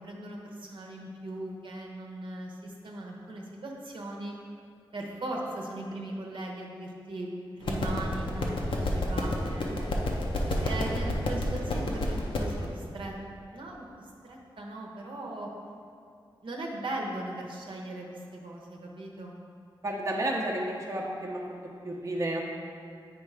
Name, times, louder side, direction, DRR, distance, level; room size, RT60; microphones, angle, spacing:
voice 1, 0.0-4.4 4.9-7.3 7.5-10.0 10.4-13.1 13.5-13.9 14.2-15.5 16.4-19.3, right 1 dB, 75° right, 0 dB, 0.9 m, -38 dB
sound 1, 7.6-12.7, left 1 dB, 80° left, 0.7 m, -30 dB
voice 2, 19.8-21.4 21.8-22.4, right 1 dB, 35° right, -2 dB, 0.7 m, -31 dB
8.2 x 3.2 x 4.8 m, 2.4 s
wide cardioid pair, 110°, 9 cm